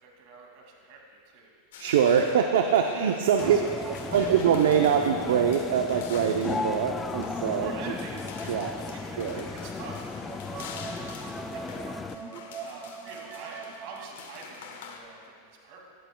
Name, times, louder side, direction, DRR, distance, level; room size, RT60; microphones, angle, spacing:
voice 1, 0.0-1.5 2.0-2.2 3.3-4.4 7.6-15.8, right 4 dB, 60° right, 0 dB, 2.3 m, -46 dB
sound 1, 1.7-15.0, left 6 dB, 75° left, 1.1 m, -46 dB
voice 2, 1.8-3.6 4.1-7.7 8.5-8.8 9.2-9.4, right 8 dB, 80° right, 4 dB, 0.6 m, -23 dB
sound 2, 3.2-14.1, right 6 dB, 30° right, 0.6 m, -44 dB
sound 3, 3.4-12.2, left 4 dB, 15° left, 0.4 m, -36 dB
16.0 x 11.0 x 2.3 m, 2.4 s
hypercardioid pair, 120°, 0 cm